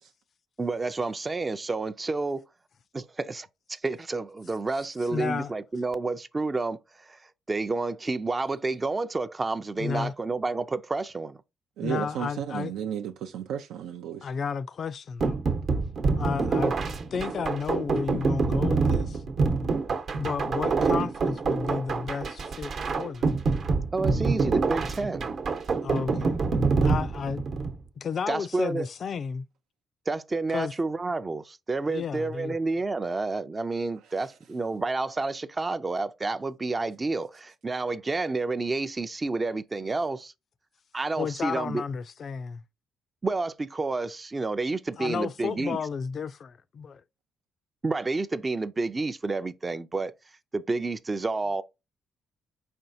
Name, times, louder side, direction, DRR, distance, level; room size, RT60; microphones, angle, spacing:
voice 1, 0.6-2.4 2.9-7.2 7.5-11.4 23.9-25.3 28.3-28.9 30.1-40.3 40.9-41.8 43.2-45.8 47.8-50.1 50.5-51.6, right 3 dB, 25° right, 0.4 m, -30 dB
voice 2, 5.1-5.5 9.8-10.1 11.8-12.7 14.2-15.4 16.2-16.7 17.1-19.2 20.2-23.4 25.8-26.4 26.8-27.4 28.0-29.5 30.5-30.7 31.9-32.6 41.2-42.6 45.0-47.0, left 6 dB, 50° left, 0.4 m, -32 dB
voice 3, 11.8-14.3, right 9 dB, 85° right, 0.4 m, -33 dB
sound 1, 15.2-27.8, right 4 dB, 60° right, 0.9 m, -26 dB
4.7 x 4.3 x 2.6 m
cardioid pair, 90°, 0 cm